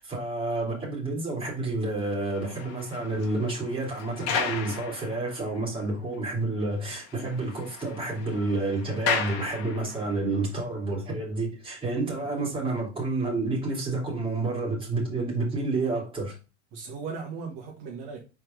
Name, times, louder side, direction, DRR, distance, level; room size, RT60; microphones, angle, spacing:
voice 1, 0.0-16.3, right 2 dB, 15° right, 3.1 m, -29 dB
sound 1, 2.1-5.6 6.1-6.2 6.6-6.7 7.0-10.2, left 6 dB, 45° left, 1.5 m, -34 dB
voice 2, 16.7-18.2, right 5 dB, 55° right, 1.5 m, -38 dB
4.7 x 4.3 x 5.2 m
supercardioid pair, 145°, 34 cm